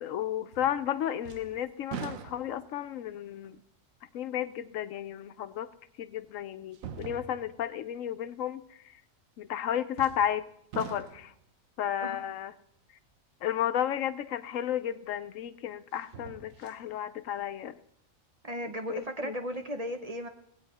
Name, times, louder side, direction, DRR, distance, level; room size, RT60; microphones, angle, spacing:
voice 1, 0.0-3.6 4.1-5.7 6.0-8.6 9.4-10.5 10.7-11.3 11.8-12.5 13.4-17.8 18.9-19.4, left 10 dB, 80° left, 12 dB, 1.0 m, -33 dB
sound 1, 0.5-0.9 1.2-2.8 3.4-3.5 5.4-5.5 6.7-7.6 10.0-10.4 10.7-11.4 14.4-14.5 15.9-16.8 17.3-17.4, right 7 dB, 90° right, 1.2 m, -43 dB
voice 2, 18.4-20.3, equal, 35° right, 6 dB, 0.8 m, -35 dB
18.0 x 8.4 x 4.1 m, 0.70 s
omnidirectional pair, 1.4 m